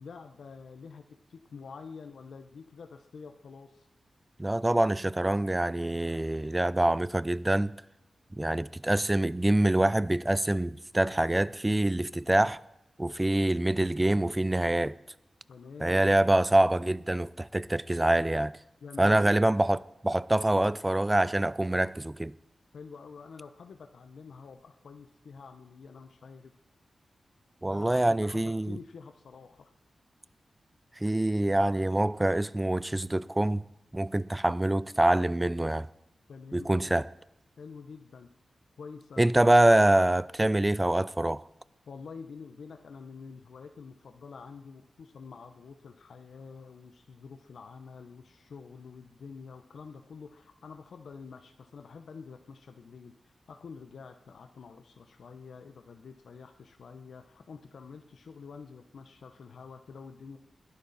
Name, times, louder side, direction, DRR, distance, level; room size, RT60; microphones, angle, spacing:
voice 1, 0.0-3.9 15.5-16.1 18.8-19.3 22.7-26.5 27.7-29.7 36.3-36.9 37.6-38.3 38.8-39.3 41.9-60.4, left 5 dB, 80° left, 0.9 m, -47 dB
voice 2, 4.4-7.8 8.3-12.6 13.0-15.0 15.8-18.5 19.0-22.3 27.6-28.8 31.0-33.7 33.9-35.9 36.5-37.1 39.2-41.4, right 1 dB, 15° right, 0.4 m, -25 dB
21.0 x 10.5 x 4.2 m
wide cardioid pair, 145°, 0 cm